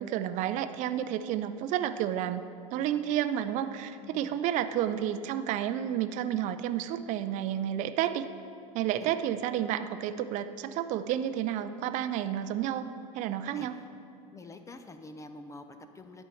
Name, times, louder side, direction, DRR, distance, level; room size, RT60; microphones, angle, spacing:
voice 1, 0.0-2.4 2.7-8.3 8.7-13.8, right 10 dB, 50° right, 10 dB, 0.4 m, -31 dB
voice 2, 4.0-4.4 9.0-9.1 13.5-13.8 14.3-16.2, left 2 dB, 20° left, 8 dB, 0.6 m, -47 dB
10.5 x 4.4 x 7.0 m, 2.6 s
hypercardioid pair, 95°, 17 cm